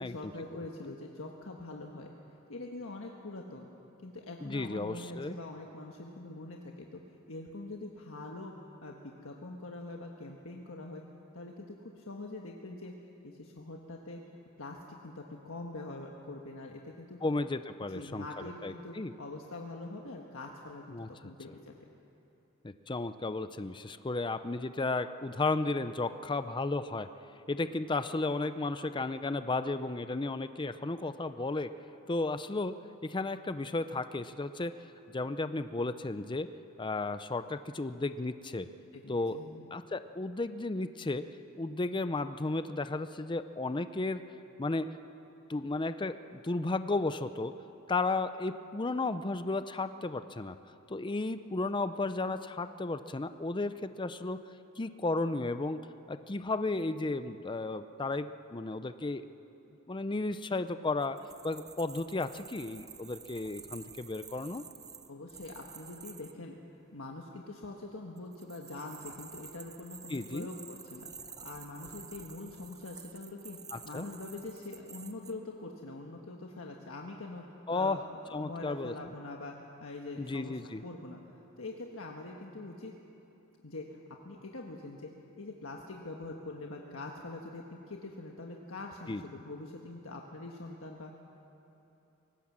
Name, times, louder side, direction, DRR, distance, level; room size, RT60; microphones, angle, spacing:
voice 1, 0.0-2.1 2.5-3.7 4.0-7.0 7.3-11.0 11.3-12.9 13.2-14.2 14.6-17.2 17.9-21.9 38.9-39.6 65.1-66.5 66.9-71.1 71.4-73.6 73.8-78.0 78.2-81.2 81.6-82.9 83.6-84.0 84.2-91.1, left 2 dB, 75° left, 0 dB, 1.4 m, -44 dB
voice 2, 4.4-5.4 17.2-18.2 18.6-19.1 20.9-21.1 22.6-27.1 27.5-31.7 32.1-34.8 35.1-36.5 36.8-38.7 39.1-39.4 39.7-41.3 41.6-44.2 44.6-44.9 45.5-47.5 47.9-50.6 50.9-54.4 54.8-55.8 56.1-59.3 59.9-61.2 61.4-64.6 70.1-70.5 73.7-74.1 77.7-78.0 78.3-78.9 80.2-80.8 89.1-89.2, left 2 dB, 25° left, 11 dB, 0.5 m, -33 dB
sound 1, 61.0-66.3 68.2-75.3, right 6 dB, 20° right, 0.7 m, -50 dB
24.0 x 18.5 x 7.4 m, 2.9 s
head